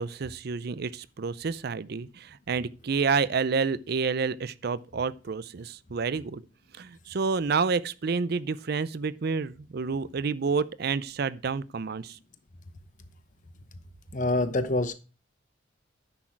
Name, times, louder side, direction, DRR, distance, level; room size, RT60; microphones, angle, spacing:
voice 1, 0.0-6.4 6.7-12.2, right 5 dB, 55° right, 0.5 m, -29 dB
voice 2, 14.1-14.9, left 2 dB, 40° left, 0.9 m, -26 dB
10.0 x 6.3 x 4.5 m
head